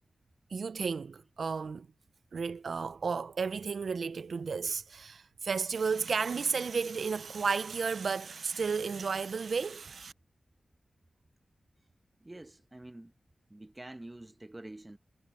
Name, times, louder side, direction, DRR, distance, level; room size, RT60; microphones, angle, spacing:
voice 1, 0.5-1.9 2.3-10.1, right 5 dB, 65° right, 0.3 m, -33 dB
voice 2, 12.2-13.1 13.5-15.0, right 1 dB, 15° right, 0.9 m, -47 dB
wide cardioid pair, 120°, 0 cm